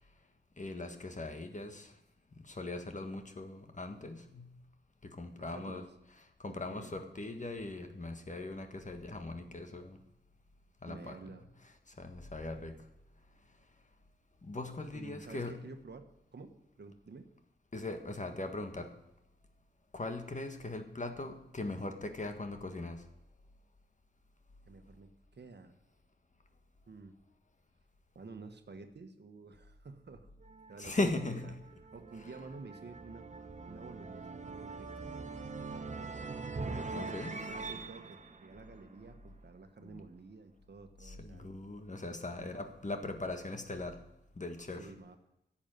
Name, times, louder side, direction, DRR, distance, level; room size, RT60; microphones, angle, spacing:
voice 1, 0.6-1.9 2.4-4.5 5.1-5.8 6.4-10.0 10.8-11.3 12.0-12.8 14.4-15.6 17.7-18.9 19.9-23.0 30.8-31.5 32.2-32.3 36.9-37.3 39.8-40.0 41.0-44.0 44.4-44.9, left 2 dB, 40° left, 6 dB, 1.6 m, -39 dB
voice 2, 5.4-5.9 6.5-6.9 10.9-11.4 14.9-17.3 24.7-25.8 26.9-27.1 28.1-30.3 30.7-31.5 31.9-33.3 33.7-35.1 36.7-41.6 42.4-42.5 44.8-45.2, right 4 dB, 65° right, 7 dB, 1.3 m, -51 dB
sound 1, 30.4-39.4, right 3 dB, 40° right, 1.1 m, -43 dB
11.0 x 7.4 x 9.0 m, 0.86 s
wide cardioid pair, 70°, 19 cm